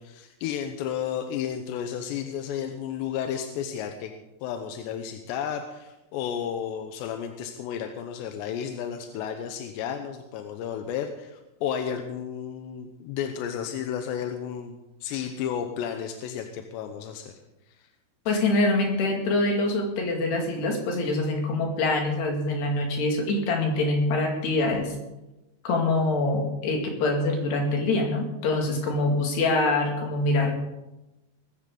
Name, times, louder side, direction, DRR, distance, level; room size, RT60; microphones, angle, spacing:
voice 1, 0.0-4.1 4.4-17.4 17.7-17.9, left 8 dB, 75° left, 5 dB, 2.8 m, -32 dB
voice 2, 18.3-24.9 25.6-30.6, left 2 dB, 60° left, 1 dB, 4.3 m, -25 dB
20.0 x 15.0 x 3.9 m, 0.99 s
omnidirectional pair, 5.6 m